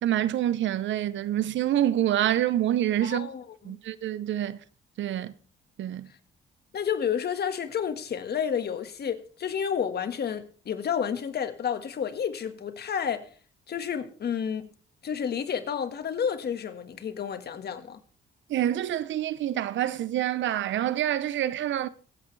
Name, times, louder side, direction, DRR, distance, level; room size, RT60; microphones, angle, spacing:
voice 1, 0.0-3.3 3.6-4.6 5.0-5.3 5.8-6.1 18.5-21.9, right 12 dB, 70° right, 0.8 m, -27 dB
voice 2, 3.0-3.8 6.7-13.3 13.7-14.7 15.0-18.0, left 7 dB, 55° left, 1.7 m, -30 dB
24.0 x 8.5 x 3.3 m
cardioid pair, 90°, 20 cm